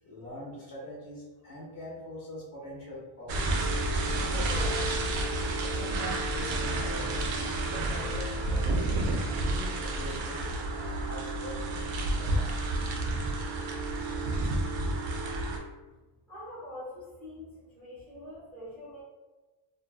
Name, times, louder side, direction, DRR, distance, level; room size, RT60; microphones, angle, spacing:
voice 1, 0.1-3.7 4.1-5.0 5.6-9.0 9.4-11.6 12.1-12.8, left 1 dB, 45° left, -5 dB, 0.7 m, -43 dB
sound 1, 3.3-15.6, right 2 dB, 75° right, 0.6 m, -30 dB
voice 2, 16.3-17.5 17.7-19.0, left 1 dB, 5° left, -9 dB, 0.8 m, -44 dB
2.5 x 2.2 x 2.3 m, 1.2 s
cardioid pair, 170°, 48 cm